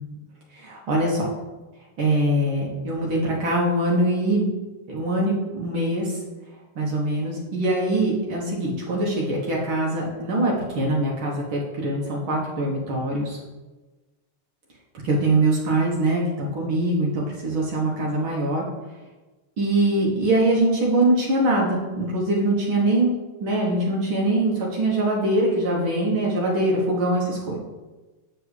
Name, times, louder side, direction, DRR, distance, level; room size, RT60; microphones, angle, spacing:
voice 1, 0.6-1.3 2.0-4.5 4.9-6.2 6.8-13.4 15.0-18.6 19.6-23.1 23.4-27.6, right 1 dB, 70° right, -3 dB, 2.0 m, -23 dB
7.5 x 7.1 x 3.2 m, 1.2 s
omnidirectional pair, 2.3 m